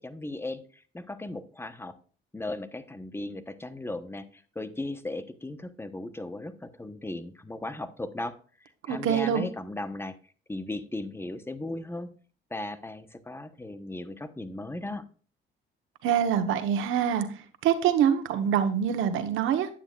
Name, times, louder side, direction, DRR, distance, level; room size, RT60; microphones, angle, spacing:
voice 1, 0.0-1.9 2.3-8.4 8.6-10.2 10.5-12.1 12.5-15.0, left 2 dB, 10° left, 11 dB, 1.0 m, -37 dB
voice 2, 8.9-9.4 16.0-17.3 17.6-19.7, right 9 dB, 90° right, 9 dB, 1.2 m, -25 dB
10.0 x 8.8 x 2.5 m, 0.40 s
cardioid pair, 90°, 20 cm